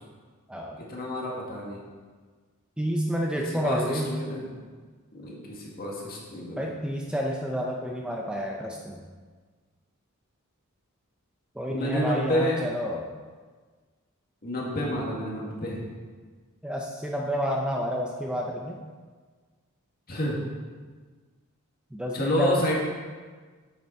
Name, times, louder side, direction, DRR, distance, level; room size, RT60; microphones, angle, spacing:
voice 1, 0.8-1.8 3.3-4.5 5.1-6.7 11.7-12.6 14.4-15.8 20.1-20.4 22.1-22.7, left 1 dB, 45° left, -3 dB, 1.8 m, -29 dB
voice 2, 2.8-4.1 6.6-9.0 11.6-13.1 16.6-18.8 21.9-22.7, equal, 5° right, -1 dB, 0.5 m, -29 dB
8.2 x 6.8 x 4.3 m, 1.5 s
head